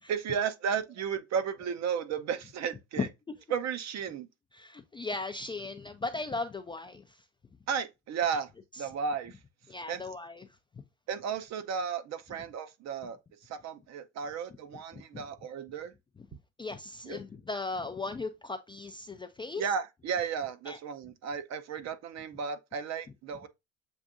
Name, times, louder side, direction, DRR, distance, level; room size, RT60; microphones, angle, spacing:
voice 1, 0.1-3.1 3.5-4.3 7.7-8.5 8.8-9.4 9.9-10.0 11.1-15.9 17.0-17.2 19.6-23.5, right 7 dB, 45° right, 0.7 m, -34 dB
voice 2, 4.5-7.2 8.8-8.9 9.7-10.5 14.9-15.0 16.6-19.6 20.7-20.8, left 3 dB, 15° left, 0.3 m, -37 dB
7.1 x 2.5 x 2.5 m
supercardioid pair, 90°, 38 cm